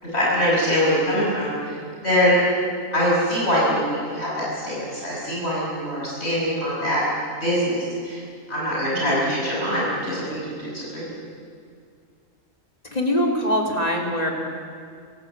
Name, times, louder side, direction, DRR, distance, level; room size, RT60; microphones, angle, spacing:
voice 1, 0.0-1.8 2.0-2.4 2.9-7.0 7.4-8.2 8.5-11.1, equal, 50° left, -6 dB, 6.1 m, -23 dB
voice 2, 8.9-9.3 12.9-14.3, equal, 30° left, 1 dB, 3.3 m, -23 dB
27.0 x 15.5 x 8.8 m, 2.2 s
omnidirectional pair, 1.5 m